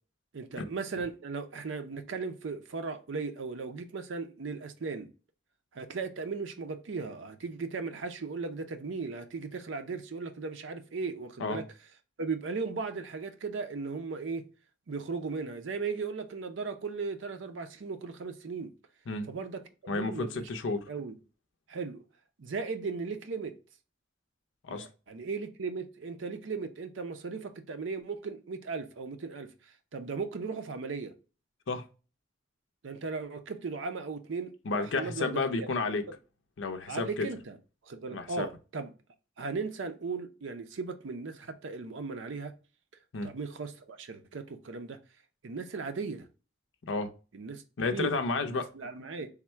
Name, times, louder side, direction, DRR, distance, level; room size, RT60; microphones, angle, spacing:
voice 1, 0.3-5.1 5.7-11.6 12.2-14.5 14.9-18.7 19.3-20.5 20.9-21.1 21.7-22.0 22.4-23.6 24.7-29.5 29.9-31.1 32.8-35.7 36.9-37.6 37.8-38.9 39.4-42.5 43.2-45.0 45.4-46.3 47.3-47.6 47.9-48.2 48.5-49.3, right 4 dB, 80° right, 0.5 m, -37 dB
voice 2, 19.9-20.8 24.6-24.9 31.7-31.8 34.7-36.0 36.6-37.3 38.1-38.5 43.1-43.3 46.8-47.1 47.8-48.7, left 3 dB, 75° left, 0.5 m, -31 dB
3.5 x 2.1 x 4.3 m
head